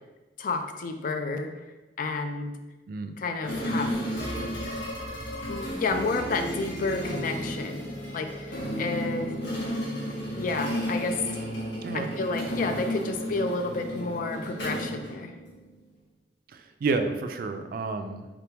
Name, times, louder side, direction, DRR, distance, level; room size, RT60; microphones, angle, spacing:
voice 1, 0.4-1.5 2.0-2.5 3.2-3.9 5.5-9.4 10.4-11.2 11.9-15.3, left 3 dB, 50° left, 6 dB, 0.3 m, -31 dB
sound 1, 3.4-15.7, equal, 90° left, 1.3 m, -33 dB
voice 2, 16.5-18.3, right 3 dB, 55° right, 7 dB, 0.3 m, -30 dB
3.7 x 3.4 x 2.9 m, 1.1 s
head